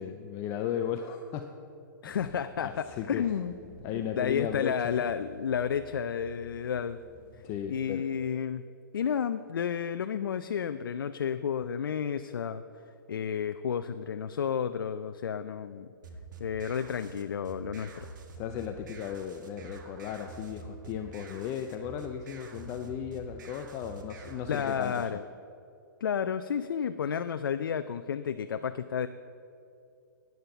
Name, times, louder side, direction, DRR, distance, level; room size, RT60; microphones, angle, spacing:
voice 1, 0.0-1.5 2.0-2.3 2.6-3.3 3.8-5.0 7.4-8.0 18.3-25.2, left 9 dB, 20° left, 6 dB, 0.5 m, -36 dB
voice 2, 2.0-3.5 3.9-7.0 7.7-8.6 8.9-12.6 13.1-15.9 16.4-18.1 24.5-25.2 26.0-29.1, left 7 dB, 85° left, 10 dB, 0.5 m, -31 dB
sound 1, 2.1-7.8, right 1 dB, 20° right, 1.5 m, -52 dB
sound 2, 16.0-25.1, right 3 dB, 60° right, 1.6 m, -47 dB
11.0 x 9.5 x 5.8 m, 2.6 s
hypercardioid pair, 155°, 11 cm